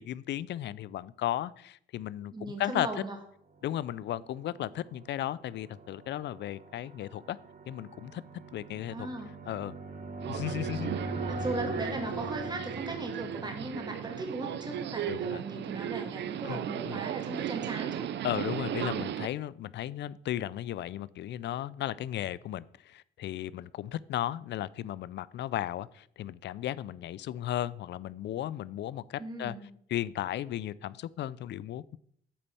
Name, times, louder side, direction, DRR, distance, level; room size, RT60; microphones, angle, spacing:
voice 1, 0.0-2.9 3.6-7.4 7.7-8.2 8.5-9.1 9.5-9.7 10.3-10.9 15.1-15.4 16.5-16.6 16.9-17.0 18.2-29.6 29.9-32.0, left 12 dB, 65° left, 0.4 m, -35 dB
voice 2, 2.3-3.2 8.9-9.3 11.3-18.1 29.2-29.7, right 2 dB, 20° right, 1.9 m, -38 dB
sound 1, 4.2-15.0, right 3 dB, 45° right, 1.4 m, -41 dB
Subway metro underground, 10.2-19.3, right 11 dB, 65° right, 0.5 m, -36 dB
8.6 x 4.1 x 6.9 m
cardioid pair, 90°, 20 cm